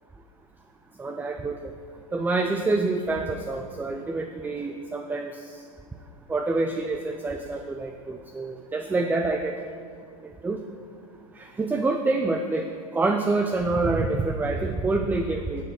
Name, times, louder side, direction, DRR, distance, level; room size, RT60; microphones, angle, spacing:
voice 1, 1.0-1.7 2.1-5.6 6.3-9.6 10.2-10.6 11.3-12.7 12.9-15.6, right 3 dB, 10° right, 5 dB, 0.4 m, -27 dB
10.5 x 6.9 x 4.8 m, 2.2 s
hypercardioid pair, 110°, 19 cm